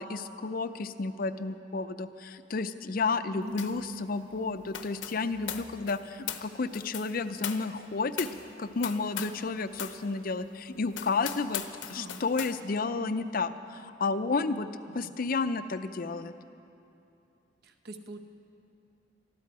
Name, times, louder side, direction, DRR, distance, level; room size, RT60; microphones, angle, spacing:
voice 1, 0.0-8.3 8.6-11.6 11.9-14.7 14.9-16.3, left 4 dB, 45° left, 12 dB, 0.5 m, -31 dB
voice 2, 3.4-3.9 11.9-12.2 14.9-15.1 17.6-18.2, right 1 dB, 55° right, 7 dB, 0.9 m, -43 dB
sound 1, 3.6-9.5 9.7-10.0 10.4-10.5 10.9-12.6, left 9 dB, 75° left, 0.8 m, -39 dB
20.5 x 13.5 x 4.8 m, 2.8 s
head